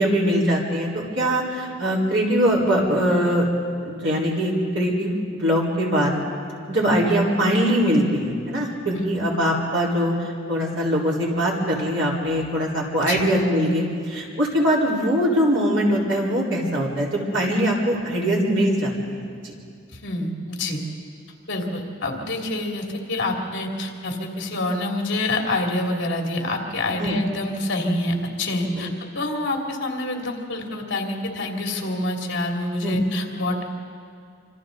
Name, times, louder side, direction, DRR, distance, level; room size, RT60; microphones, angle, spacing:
voice 1, 0.0-3.4 3.8-6.2 6.7-18.9 19.2-19.5 27.0-27.2 28.7-28.9 32.8-33.0, equal, 65° right, -4 dB, 4.3 m, -22 dB
voice 2, 19.9-20.8 21.5-28.9 29.1-33.6, left 2 dB, 65° left, 1 dB, 2.7 m, -27 dB
26.5 x 26.0 x 4.0 m, 2.2 s
head